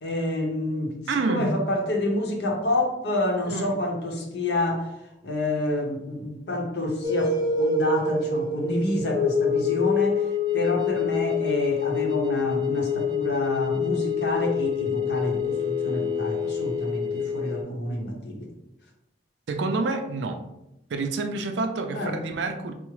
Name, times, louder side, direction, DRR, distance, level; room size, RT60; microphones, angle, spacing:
voice 1, 0.0-0.9 1.3-4.9 5.2-18.5 21.9-22.2, left 1 dB, 65° left, 0.7 m, -28 dB
voice 2, 1.1-1.5 3.4-3.8 19.5-20.4 20.9-22.7, right 3 dB, 85° right, 0.4 m, -28 dB
sound 1, 7.0-17.6, left 5 dB, 25° right, 0.4 m, -26 dB
4.7 x 2.0 x 3.0 m
head